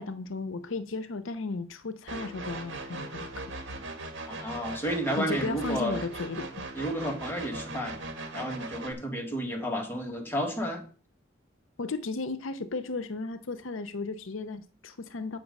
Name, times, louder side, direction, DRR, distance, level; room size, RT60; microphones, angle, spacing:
voice 1, 0.0-3.4 5.2-6.5 11.8-15.4, left 3 dB, 85° left, 0.7 m, -35 dB
sound 1, 2.1-8.9, right 2 dB, 65° right, 1.6 m, -39 dB
voice 2, 4.3-6.0 6.7-8.0 8.3-10.8, equal, 10° left, 2.1 m, -31 dB
8.0 x 5.9 x 5.3 m
head